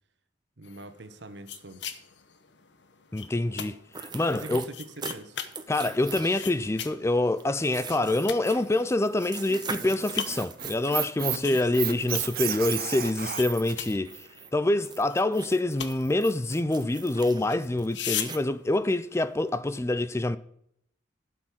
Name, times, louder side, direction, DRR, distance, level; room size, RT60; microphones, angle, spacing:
sound 1, 0.6-19.6, left 9 dB, 75° left, 1.0 m, -42 dB
voice 1, 0.6-2.0 4.3-5.4 11.3-11.6, right 2 dB, 70° right, 1.2 m, -43 dB
voice 2, 3.1-4.6 5.7-20.4, left 2 dB, 15° left, 0.4 m, -26 dB
sound 2, 3.9-5.2 5.5-6.7 7.4-14.5 14.8-18.4, right 5 dB, 25° right, 0.9 m, -42 dB
Squeak, 9.5-13.7, right 11 dB, 55° right, 1.0 m, -32 dB
12.0 x 6.4 x 6.3 m
head